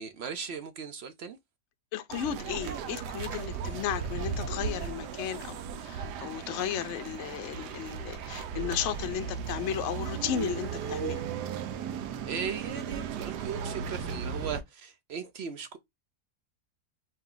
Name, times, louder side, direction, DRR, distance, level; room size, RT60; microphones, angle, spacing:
voice 1, 0.0-1.4 12.3-15.8, right 6 dB, 70° right, 0.6 m, -38 dB
voice 2, 1.9-11.2, left 11 dB, 70° left, 0.7 m, -34 dB
sound 1, 2.1-14.6, right 7 dB, 90° right, 1.2 m, -36 dB
4.2 x 2.7 x 3.7 m
omnidirectional pair, 1.7 m